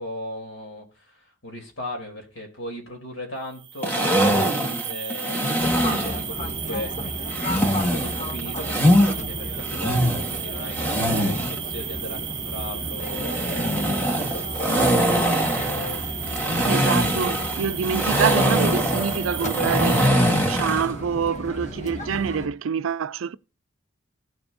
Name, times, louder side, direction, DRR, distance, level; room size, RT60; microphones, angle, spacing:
voice 1, 0.0-16.6, left 1 dB, 75° left, 3.3 m, -37 dB
sound 1, 3.5-20.1, right 9 dB, 20° right, 0.6 m, -34 dB
aerial ropeslide, 3.8-6.2 7.3-9.1 9.6-11.6 13.0-20.9, equal, 10° left, 1.4 m, -23 dB
Fixed-wing aircraft airplane, 5.6-22.5, equal, 35° left, 1.1 m, -34 dB
voice 2, 16.7-20.1 20.5-23.4, right 7 dB, 85° right, 0.4 m, -26 dB
16.0 x 6.9 x 2.6 m
head